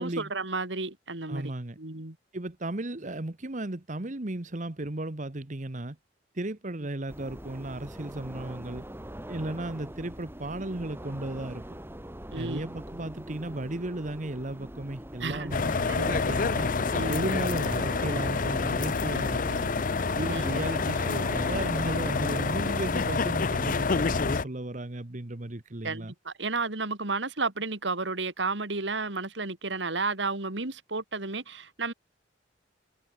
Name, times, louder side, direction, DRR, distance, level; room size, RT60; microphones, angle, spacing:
voice 1, 0.0-1.5 1.8-2.2 12.3-12.7 15.2-15.5 15.9-16.1 16.9-17.3 20.3-20.4 25.8-31.9, right 3 dB, 80° right, 2.8 m, -32 dB
voice 2, 1.3-1.8 2.3-6.0 6.3-8.9 9.3-11.6 12.3-16.7 17.1-19.7 20.2-26.1, right 1 dB, 45° right, 1.3 m, -35 dB
sound 1, 7.1-23.1, right 1 dB, 15° right, 1.8 m, -42 dB
sound 2, 15.5-24.4, left 4 dB, 45° left, 0.6 m, -28 dB
sound 3, 15.6-21.1, left 2 dB, 80° left, 3.8 m, -52 dB
head